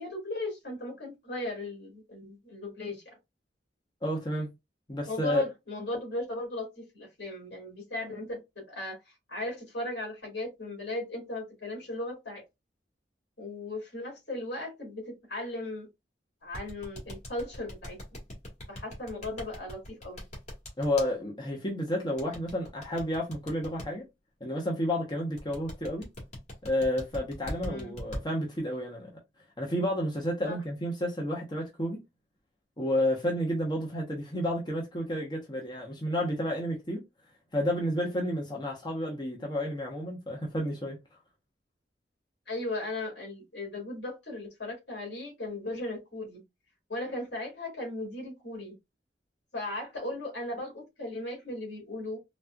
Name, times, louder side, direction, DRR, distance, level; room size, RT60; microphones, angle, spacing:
voice 1, 0.0-3.0 5.1-9.0 9.3-12.4 13.4-15.9 16.4-18.0 18.7-20.2 27.6-28.0 30.4-30.6 42.5-46.4 46.9-48.7 49.5-52.2, left 2 dB, 70° left, 2.1 m, -37 dB
voice 2, 4.0-4.5 4.9-5.4 20.8-24.0 24.4-26.0 26.6-29.1 29.6-32.0 32.8-37.0 37.5-41.0, left 1 dB, 25° left, 0.8 m, -31 dB
sound 1, 16.5-21.1 22.2-23.9 25.4-28.2, equal, 40° left, 1.5 m, -40 dB
4.1 x 2.3 x 2.2 m
head